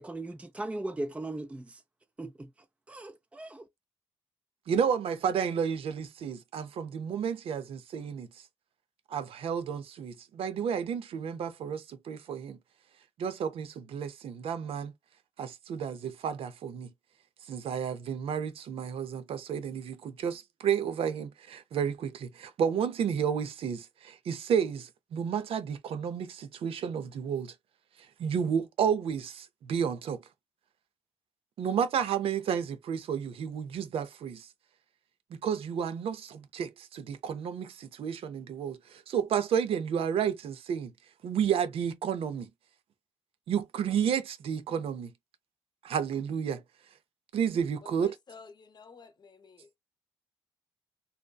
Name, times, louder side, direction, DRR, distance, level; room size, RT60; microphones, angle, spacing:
voice 1, 0.0-1.8 2.2-2.5 2.9-3.6, right 2 dB, 10° right, 0.4 m, -38 dB
voice 2, 4.7-8.3 9.1-12.6 13.2-14.9 15.4-16.9 17.5-27.5 28.2-30.2 31.6-34.5 35.4-40.9 41.2-42.5 43.5-45.1 45.8-46.6 47.3-48.1, right 7 dB, 65° right, 0.5 m, -31 dB
voice 3, 47.8-49.8, left 5 dB, 45° left, 0.8 m, -52 dB
2.7 x 2.2 x 2.2 m
supercardioid pair, 50°, 10 cm